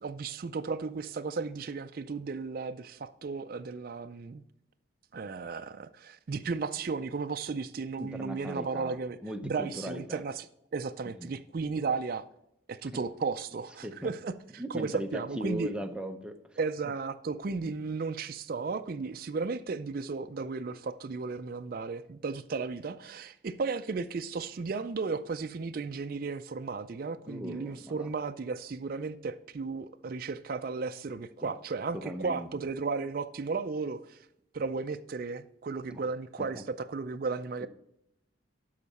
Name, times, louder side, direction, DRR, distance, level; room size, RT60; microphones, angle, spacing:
voice 1, 0.0-4.4 5.1-9.2 9.4-10.5 10.7-12.3 12.7-15.7 16.6-34.3 34.5-37.7, right 4 dB, 45° right, 0.4 m, -34 dB
voice 2, 8.0-10.2 11.2-11.3 13.8-14.1 14.6-16.6 27.3-28.1 31.4-31.5 31.9-32.5 35.9-36.1 36.4-36.6 37.6-37.7, equal, 5° right, 0.6 m, -39 dB
12.0 x 4.7 x 4.2 m
head